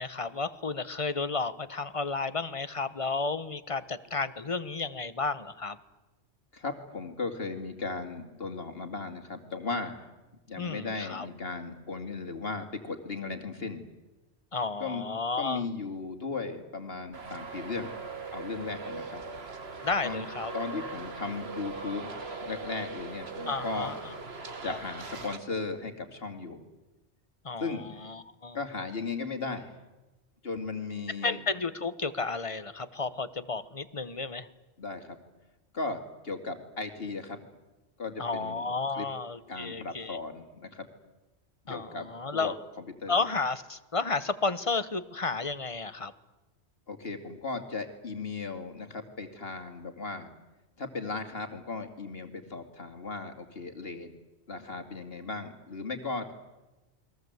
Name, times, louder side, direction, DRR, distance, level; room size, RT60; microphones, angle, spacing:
voice 1, 0.0-5.8 10.6-11.3 14.5-15.6 19.8-20.5 23.5-24.1 24.7-24.8 27.4-28.6 31.2-34.5 38.2-40.2 41.7-42.5 43.1-46.1, left 4 dB, 30° left, 13 dB, 1.1 m, -32 dB
voice 2, 6.5-10.1 10.5-13.9 14.8-15.0 15.4-17.9 18.3-19.2 20.0-20.3 20.5-22.1 22.4-24.0 24.6-26.6 27.6-28.0 28.5-29.7 30.4-31.4 34.8-35.2 35.7-37.4 38.0-39.1 39.5-40.9 41.6-42.5 43.0-43.2 46.9-50.3 50.8-54.1 54.5-56.3, left 3 dB, 55° left, 6 dB, 2.7 m, -36 dB
Traffic noise roadway noise, 17.1-25.4, right 4 dB, 60° right, 2.1 m, -40 dB
29.0 x 21.5 x 8.1 m, 1.1 s
omnidirectional pair, 1.2 m